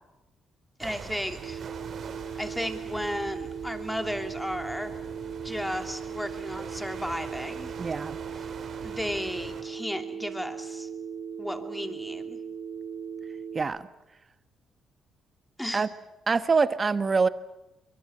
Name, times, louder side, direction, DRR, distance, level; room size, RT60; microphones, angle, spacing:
voice 1, 0.8-1.6 2.4-5.0 5.4-7.7 8.8-10.9 11.4-12.4 15.6-15.9, equal, 5° left, 6 dB, 2.8 m, -34 dB
sound 1, 0.8-9.6, right 6 dB, 55° right, 4.0 m, -43 dB
Telephone, 1.4-13.6, right 7 dB, 85° right, 2.8 m, -38 dB
voice 2, 7.8-8.2 13.5-13.9 15.7-15.9 16.3-17.3, right 4 dB, 35° right, 12 dB, 1.2 m, -24 dB
24.0 x 23.0 x 7.8 m, 0.99 s
cardioid pair, 90°, 0 cm